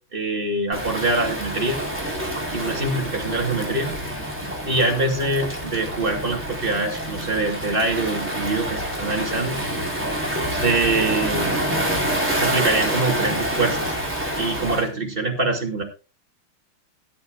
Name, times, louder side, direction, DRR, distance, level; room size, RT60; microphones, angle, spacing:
voice 1, 0.1-1.8 2.5-3.9 4.6-9.6 10.5-11.5 12.3-13.9 14.3-15.8, right 2 dB, 25° right, 1 dB, 2.8 m, -24 dB
Waves surf, 0.7-14.9, right 1 dB, 5° right, 4.3 m, -27 dB
18.0 x 10.5 x 2.5 m, 0.31 s
omnidirectional pair, 2.4 m